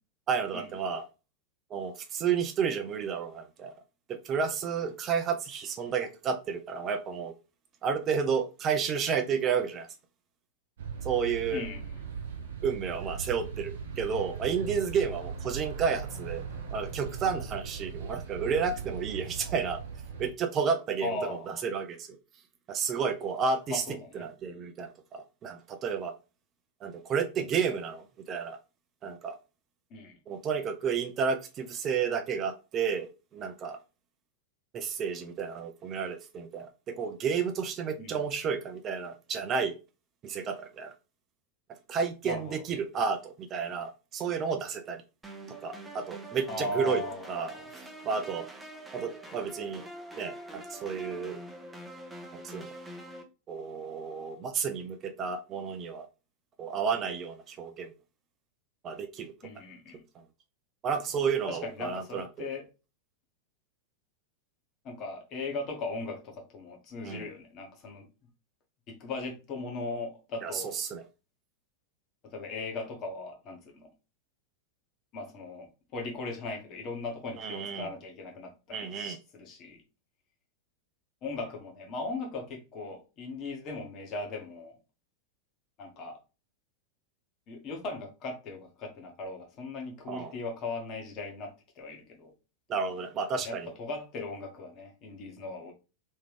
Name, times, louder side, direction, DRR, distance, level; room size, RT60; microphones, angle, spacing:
voice 1, 0.3-1.0 1.7-3.7 4.1-7.3 7.8-9.9 11.0-11.6 12.6-16.4 16.7-19.8 20.2-22.2 22.7-23.8 24.2-26.1 26.8-28.6 29.0-29.4 30.3-33.8 34.7-39.7 40.2-40.9 41.9-45.0 45.6-47.0 47.3-48.5 48.9-49.8 50.2-51.4 52.3-52.7 53.5-56.1 56.6-57.9 58.8-59.3 60.8-62.5 67.0-67.2 70.4-71.0 77.4-77.9 78.7-79.2 90.1-90.3 92.7-93.7, right 6 dB, 30° right, 0.5 m, -31 dB
sound 1, 10.8-20.3, right 6 dB, 60° right, 0.9 m, -39 dB
voice 2, 11.5-11.9 21.0-21.6 23.7-24.3 29.9-30.2 38.0-38.2 42.2-42.6 46.5-47.7 59.4-60.0 61.5-62.6 64.8-68.1 68.9-70.8 72.2-73.9 75.1-79.8 81.2-84.8 85.8-86.2 87.5-92.3 93.4-95.7, left 3 dB, 35° left, 1.3 m, -38 dB
sound 2, 45.2-53.2, right 1 dB, 10° right, 0.8 m, -45 dB
3.6 x 3.1 x 3.4 m
figure-of-eight pair, 90°, 0 cm